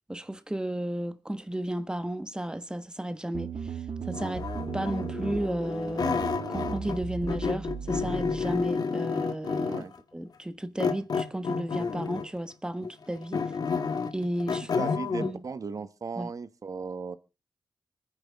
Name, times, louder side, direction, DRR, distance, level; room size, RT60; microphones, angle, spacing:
voice 1, 0.1-4.5 4.7-6.2 6.5-9.8 10.1-13.4 14.1-14.7 15.2-15.4 16.2-16.3, right 1 dB, 10° right, 1.3 m, -33 dB
sound 1, 3.3-8.7, right 6 dB, 70° right, 2.5 m, -37 dB
sound 2, 4.1-7.0 7.3-10.0 10.8-12.4 12.8-15.3, left 5 dB, 70° left, 1.7 m, -30 dB
voice 2, 9.6-9.9 14.8-17.2, right 5 dB, 55° right, 1.4 m, -36 dB
25.5 x 9.9 x 3.6 m
cardioid pair, 80°, 7 cm